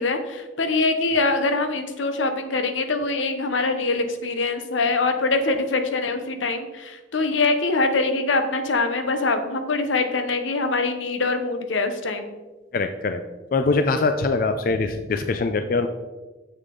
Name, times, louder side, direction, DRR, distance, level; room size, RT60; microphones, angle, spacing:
voice 1, 0.0-12.3, left 3 dB, 90° left, 8 dB, 0.8 m, -23 dB
voice 2, 12.7-13.2 13.5-15.9, left 3 dB, 50° left, 8 dB, 0.4 m, -22 dB
7.3 x 6.5 x 3.8 m, 1.2 s
head